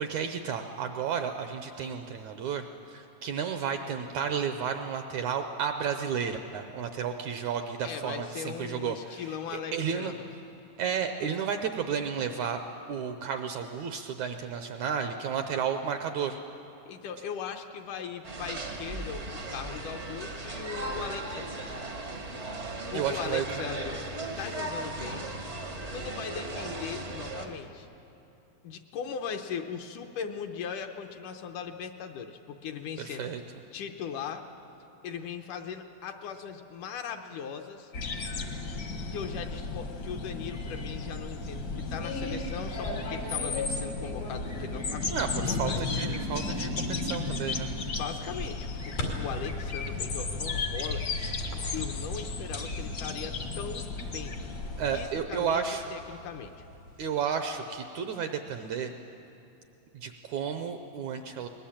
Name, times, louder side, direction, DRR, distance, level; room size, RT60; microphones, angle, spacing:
voice 1, 0.0-10.1 10.8-12.6 12.9-16.4 22.9-23.6 33.0-33.4 45.1-47.7 54.8-55.9 57.0-58.9 59.9-61.5, right 7 dB, 75° right, 7 dB, 1.7 m, -32 dB
voice 2, 7.8-10.2 16.9-21.5 22.9-24.0 24.4-25.3 25.9-27.9 28.6-33.3 33.7-34.5 35.0-37.9 39.1-45.1 45.5-45.8 47.9-51.1 51.4-54.4 54.9-55.6 55.9-56.5, left 7 dB, 75° left, 5 dB, 2.1 m, -39 dB
sound 1, 18.2-27.5, right 2 dB, 60° right, 0.7 m, -37 dB
sound 2, 37.9-55.1, left 3 dB, 55° left, 1.1 m, -34 dB
sound 3, 41.3-57.2, left 3 dB, 90° left, 4.6 m, -42 dB
21.0 x 20.5 x 8.7 m, 2.9 s
omnidirectional pair, 4.1 m